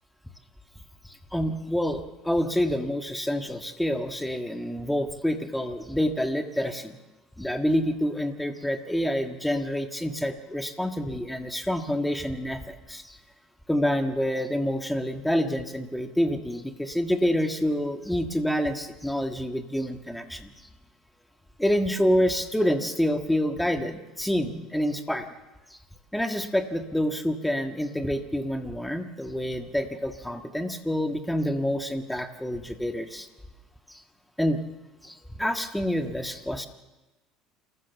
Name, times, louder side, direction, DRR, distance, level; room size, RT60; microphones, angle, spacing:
voice 1, 1.0-7.0 7.4-13.2 13.7-20.5 21.6-25.3 25.7-25.8 26.1-33.3 33.9-34.0 34.4-34.6 35.0-36.7, equal, 5° left, 6 dB, 1.6 m, -27 dB
28.0 x 14.0 x 7.1 m, 1.1 s
cardioid pair, 130°, 0 cm